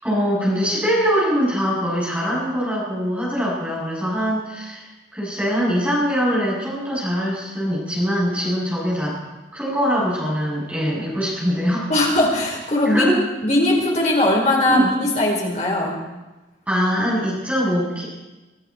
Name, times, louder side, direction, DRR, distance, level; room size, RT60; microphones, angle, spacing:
voice 1, 0.0-9.2 9.5-11.9 12.9-13.2 14.7-14.9 16.7-18.0, equal, 10° right, -7 dB, 7.8 m, -22 dB
voice 2, 11.9-13.1 13.4-16.0, left 1 dB, 40° left, -2 dB, 4.5 m, -19 dB
24.5 x 13.0 x 4.5 m, 1.1 s
head